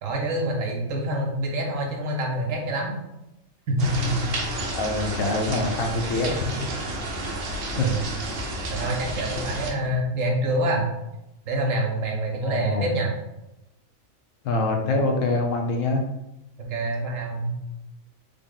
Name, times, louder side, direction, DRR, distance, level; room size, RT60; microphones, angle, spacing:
voice 1, 0.0-2.9 3.7-4.3 7.8-8.1 8.7-10.8 11.5-13.1 16.6-17.5, right 1 dB, 75° right, 1 dB, 1.1 m, -26 dB
sound 1, 3.8-9.7, right 1 dB, 55° right, 0.7 m, -31 dB
voice 2, 4.7-6.6 7.3-7.4 7.8-7.9 12.4-12.9 14.4-16.0, left 2 dB, 75° left, 2 dB, 0.9 m, -25 dB
3.6 x 2.0 x 3.6 m, 0.89 s
omnidirectional pair, 1.4 m